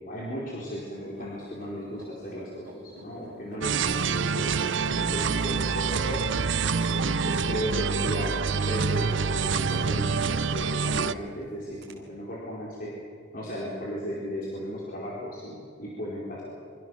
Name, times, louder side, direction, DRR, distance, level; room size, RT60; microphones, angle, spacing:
voice 1, 0.0-3.7 4.0-6.2 6.4-12.9 13.3-16.4, equal, 45° left, -6 dB, 4.6 m, -35 dB
sound 1, 0.9-11.4 11.8-11.9, right 1 dB, 55° right, 3.5 m, -47 dB
sound 2, 3.6-11.1, right 5 dB, 70° right, 0.6 m, -26 dB
26.5 x 25.5 x 6.5 m, 2.3 s
head